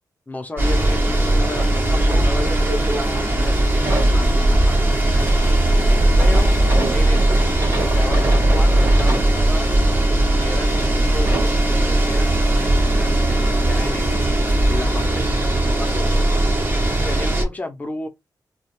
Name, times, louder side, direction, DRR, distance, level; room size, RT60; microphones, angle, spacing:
voice 1, 0.3-5.4 6.2-6.5 6.9-10.0 10.3-14.3 14.7-16.4 17.0-18.1, left 2 dB, 20° left, 0.6 m, -33 dB
sound 1, 0.6-17.4, right 1 dB, 30° right, 0.6 m, -18 dB
sound 2, 0.7-1.0 1.3-3.0 3.3-9.3 9.9-10.0 10.7-10.9 11.2-11.6 13.3-13.4 13.7-13.8, right 2 dB, 45° right, 1.1 m, -30 dB
2.3 x 2.1 x 2.9 m
wide cardioid pair, 125°, 7 cm